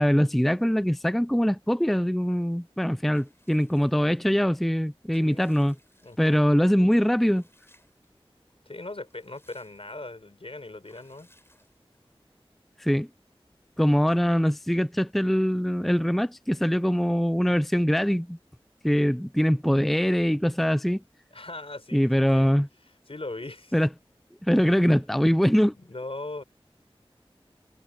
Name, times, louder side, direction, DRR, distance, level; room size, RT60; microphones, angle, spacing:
voice 1, 0.0-5.8 6.2-7.4 12.8-13.1 13.8-18.4 18.8-21.0 21.9-22.7 23.7-23.9 24.4-25.7, equal, ahead, 0.5 m, -23 dB
Water / Bathtub (filling or washing) / Liquid, 3.1-4.3 4.8-6.5 7.2-8.1 8.5-8.6 8.9-10.1 10.8-12.1, left 1 dB, 25° left, 7.8 m, -63 dB
voice 2, 6.0-6.4 8.7-11.3 21.3-22.5 23.1-23.7 25.7-26.4, left 2 dB, 70° left, 4.2 m, -39 dB
wide cardioid pair, 40°, 10 cm